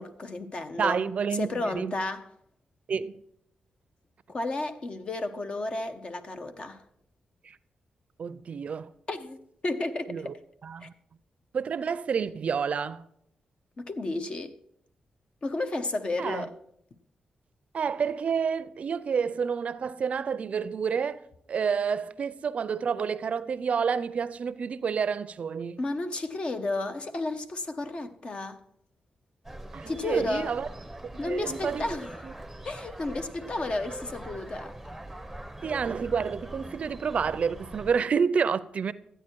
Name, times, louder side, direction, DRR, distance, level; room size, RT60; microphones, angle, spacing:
voice 1, 0.0-1.0 1.3-2.3 4.3-6.8 9.1-10.3 10.8-10.9 13.8-14.5 15.4-16.5 25.8-28.6 29.9-30.5 31.2-32.2 32.6-34.8, left 2 dB, 40° left, 0.8 m, -32 dB
voice 2, 0.8-1.9 2.9-3.2 7.4-7.6 8.2-8.9 10.1-10.3 10.6-10.9 11.5-13.1 16.2-16.4 17.7-25.8 29.7-30.7 31.1-31.9 32.2-32.3 35.6-38.9, right 6 dB, 55° right, 0.5 m, -29 dB
sound 1, 29.4-38.0, right 1 dB, ahead, 0.8 m, -42 dB
13.0 x 9.0 x 4.5 m
wide cardioid pair, 110°, 3 cm